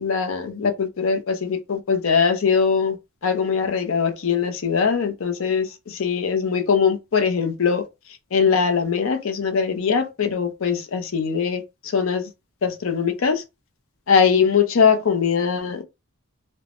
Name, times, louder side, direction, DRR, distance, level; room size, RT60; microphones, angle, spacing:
voice 1, 0.0-3.0 3.2-7.8 8.3-11.6 11.9-12.3 12.6-13.4 14.1-15.8, left 6 dB, 65° left, 0.5 m, -21 dB
3.4 x 2.0 x 2.4 m
head